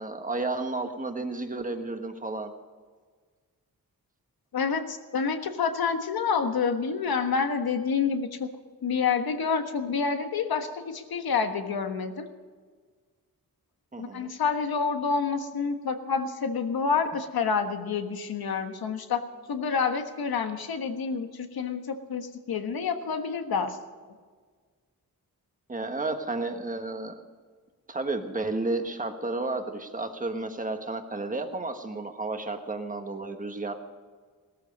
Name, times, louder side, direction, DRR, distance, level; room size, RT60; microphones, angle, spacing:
voice 1, 0.0-2.5 13.9-14.3 25.7-27.1 27.9-33.7, right 2 dB, 20° right, 6 dB, 1.4 m, -32 dB
voice 2, 4.5-8.5 8.8-12.2 14.0-23.8, left 5 dB, 85° left, 6 dB, 1.4 m, -28 dB
18.0 x 13.5 x 5.3 m, 1.5 s
wide cardioid pair, 150°, 35 cm